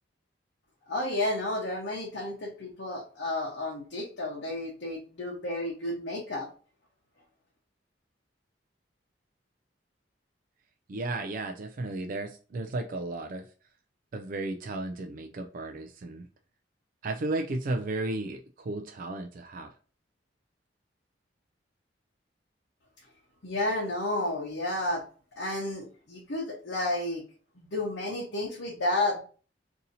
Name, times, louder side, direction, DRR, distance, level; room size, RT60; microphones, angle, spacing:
voice 1, 0.9-6.5 23.4-25.0 25.4-27.2 27.6-29.2, left 1 dB, 75° left, -2 dB, 0.9 m, -31 dB
voice 2, 10.9-13.4 14.1-16.3 17.0-19.7, right 2 dB, 45° right, 5 dB, 0.3 m, -34 dB
2.7 x 2.7 x 3.9 m, 0.38 s
head